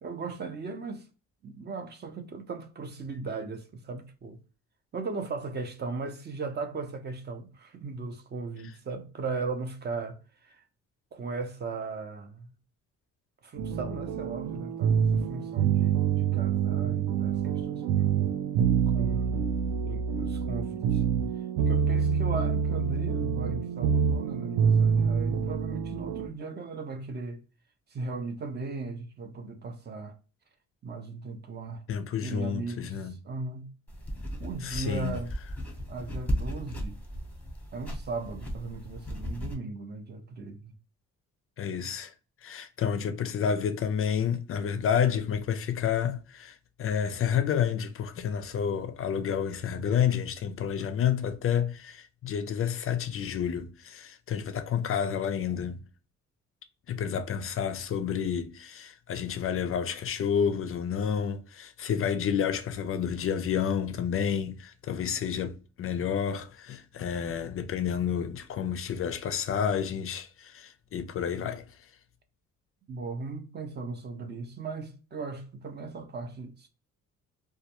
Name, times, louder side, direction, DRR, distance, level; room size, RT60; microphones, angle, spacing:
voice 1, 0.0-1.1 1.4-4.4 4.9-10.6 11.1-12.5 13.4-18.2 18.9-21.0 21.7-27.4 27.9-30.2 30.8-31.8 32.2-33.7 34.4-35.3 35.9-37.0 37.7-40.7 72.9-76.7, right 4 dB, 35° right, 0.5 m, -37 dB
sound 1, 13.6-26.3, right 7 dB, 80° right, 0.5 m, -26 dB
voice 2, 31.9-33.1 34.6-35.2 41.6-42.1 42.4-55.8 56.9-71.6, left 8 dB, 45° left, 0.4 m, -30 dB
sound 2, 33.9-39.5, equal, 5° left, 0.8 m, -36 dB
2.2 x 2.2 x 2.8 m
cardioid pair, 90°, 30 cm